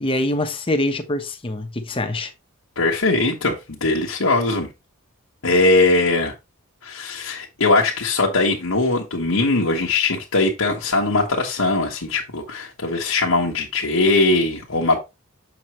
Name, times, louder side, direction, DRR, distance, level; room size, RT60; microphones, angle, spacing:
voice 1, 0.0-2.3, left 1 dB, 25° left, 1.0 m, -24 dB
voice 2, 2.8-4.7 5.4-6.3 6.8-15.0, left 2 dB, 75° left, 1.2 m, -20 dB
7.1 x 6.0 x 3.1 m
head